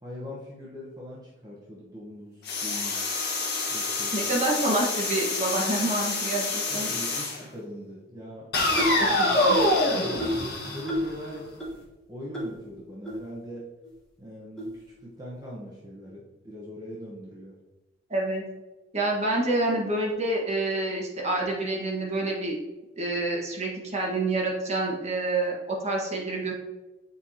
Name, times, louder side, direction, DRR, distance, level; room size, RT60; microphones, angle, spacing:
voice 1, 0.0-3.2 3.7-4.1 6.7-8.5 8.9-11.5 12.1-13.7 14.2-17.6, equal, 20° right, -6 dB, 1.1 m, -42 dB
sound 1, 2.5-7.4 8.5-11.5, left 2 dB, 60° left, 1.2 m, -27 dB
voice 2, 4.1-6.9 9.0-9.6 18.1-18.4 18.9-22.5 23.0-26.5, right 2 dB, 35° right, -3 dB, 1.5 m, -27 dB
sound 2, 8.8-9.1 9.5-9.8 10.2-10.5 10.9-11.2 11.6-11.7 12.3-12.5 13.1-13.2 13.8-13.9 14.6-14.7, equal, 5° left, 1.4 m, -29 dB
7.9 x 4.7 x 2.9 m, 1.1 s
head